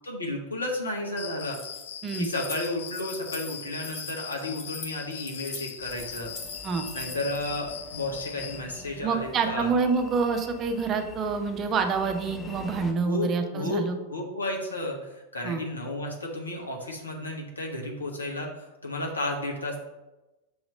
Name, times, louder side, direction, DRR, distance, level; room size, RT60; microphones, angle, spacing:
voice 1, 0.0-1.6 2.2-6.3 6.9-9.7 13.0-19.8, left 1 dB, 80° left, 0 dB, 1.2 m, -32 dB
Cricket, 1.2-8.6, left 9 dB, 60° left, 0.3 m, -41 dB
Keys jangling, 1.4-7.4, left 3 dB, 45° left, 1.3 m, -42 dB
sound 1, 5.8-12.9, left 2 dB, 15° left, 0.8 m, -45 dB
voice 2, 9.0-13.9 15.4-15.6, right 5 dB, 30° right, 6 dB, 0.7 m, -27 dB
6.2 x 3.0 x 5.1 m, 1.0 s
figure-of-eight pair, 90°, 0 cm